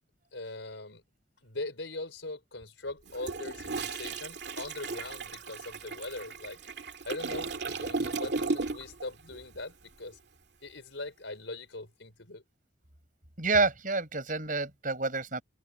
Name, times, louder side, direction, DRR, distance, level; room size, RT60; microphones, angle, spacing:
voice 1, 0.3-1.0 1.4-6.6 7.0-10.2 10.6-12.4, left 2 dB, 80° left, 4.5 m, -41 dB
Toilet flush, 3.1-9.0 9.3-9.6, right 3 dB, 60° right, 2.4 m, -35 dB
voice 2, 13.4-15.4, right 3 dB, 45° right, 7.4 m, -28 dB
head